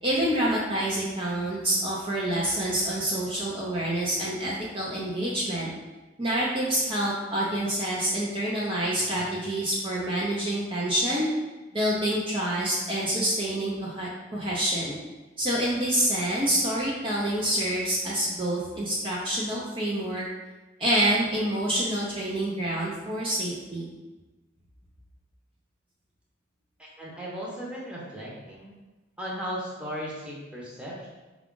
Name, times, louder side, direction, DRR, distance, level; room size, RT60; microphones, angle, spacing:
voice 1, 0.0-5.7 6.2-11.3 11.7-15.0 15.4-20.2 20.8-24.0, right 1 dB, 30° right, -6 dB, 0.6 m, -27 dB
voice 2, 26.8-28.7 29.2-31.1, equal, 5° right, -5 dB, 0.9 m, -36 dB
4.8 x 2.4 x 3.7 m, 1.1 s
head